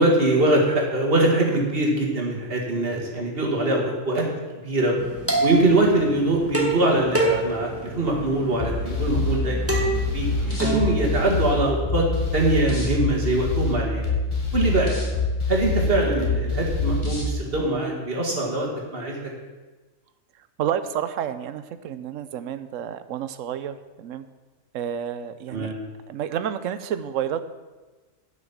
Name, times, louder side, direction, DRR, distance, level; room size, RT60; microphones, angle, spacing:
voice 1, 0.0-4.2 4.6-4.9 5.4-9.6 10.1-12.1 12.3-14.1 14.5-15.0 15.5-19.2 25.5-25.7, right 2 dB, 45° right, -1 dB, 2.3 m, -23 dB
sound 1, 5.0-11.7, right 2 dB, 10° right, 1.6 m, -28 dB
sound 2, 8.6-17.3, left 3 dB, 20° left, 2.4 m, -26 dB
voice 2, 20.6-24.2 24.7-25.7 26.1-27.4, right 9 dB, 75° right, 12 dB, 1.0 m, -30 dB
10.5 x 6.4 x 7.3 m, 1.2 s
omnidirectional pair, 1.4 m